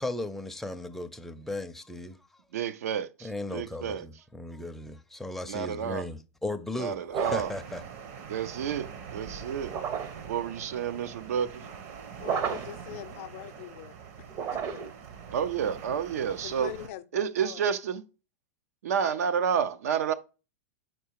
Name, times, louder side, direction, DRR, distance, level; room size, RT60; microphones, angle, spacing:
voice 1, 0.0-2.4 3.2-7.8, left 2 dB, 5° left, 0.5 m, -36 dB
voice 2, 2.5-4.1 5.5-6.0 6.8-7.5 8.3-9.8 10.3-11.7 15.3-16.7 17.1-18.0 18.8-20.1, right 7 dB, 75° right, 0.6 m, -30 dB
sound 1, 7.1-7.6 9.6-10.3 12.2-12.9 14.3-15.0, right 7 dB, 40° right, 0.7 m, -32 dB
sound 2, 7.1-16.9, right 7 dB, 55° right, 1.0 m, -44 dB
voice 3, 12.2-13.9 14.5-14.8 16.4-17.6, left 14 dB, 60° left, 0.5 m, -41 dB
4.8 x 4.6 x 4.6 m
hypercardioid pair, 110°, 8 cm